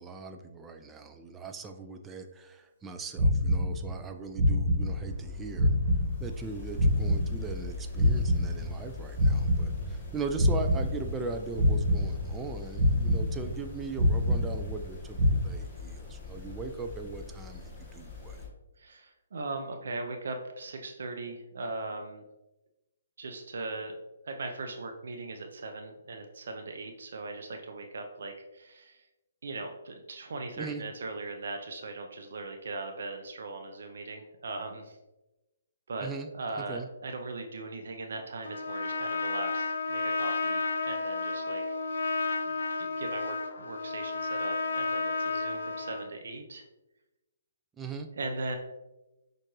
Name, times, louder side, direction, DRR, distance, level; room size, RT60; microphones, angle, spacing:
voice 1, 0.0-5.7 6.2-18.4 30.6-30.8 36.0-36.3 36.7-36.9 47.8-48.1, right 4 dB, 10° right, 5 dB, 0.4 m, -39 dB
sound 1, 3.1-4.1 4.3-5.3 5.5-7.7 7.9-10.1 10.3-11.3 11.5-12.5 12.7-13.7 13.9-14.9 15.1-15.4, left 1 dB, 35° right, 1.3 m, -26 dB
sound 2, 4.8-18.5, left 5 dB, 25° left, 1.3 m, -43 dB
voice 2, 18.8-22.2 23.2-23.9 24.2-29.1 29.4-35.0 35.9-46.6 48.1-48.6, right 3 dB, 65° right, 4 dB, 0.5 m, -39 dB
Trumpet, 38.4-46.1, left 3 dB, 65° left, 0.4 m, -32 dB
6.3 x 2.5 x 3.0 m, 1.0 s
figure-of-eight pair, 135°, 0 cm